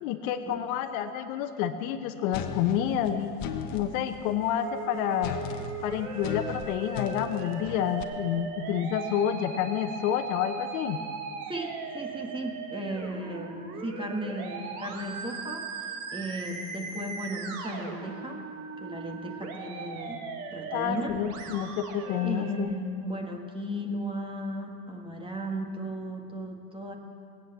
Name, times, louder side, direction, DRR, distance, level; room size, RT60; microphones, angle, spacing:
voice 1, 0.0-5.4 5.8-11.0 20.7-22.7, left 9 dB, 60° left, 9 dB, 1.0 m, -29 dB
sound 1, 2.3-3.9 5.2-8.0, left 7 dB, 45° left, 1.3 m, -36 dB
Musical instrument, 4.6-22.6, right 5 dB, 65° right, 2.1 m, -39 dB
voice 2, 11.5-15.8 16.1-18.4 18.8-21.2 22.2-26.9, right 1 dB, 10° right, 3 dB, 1.7 m, -36 dB
19.5 x 8.6 x 7.7 m, 2.5 s
hypercardioid pair, 105°, 48 cm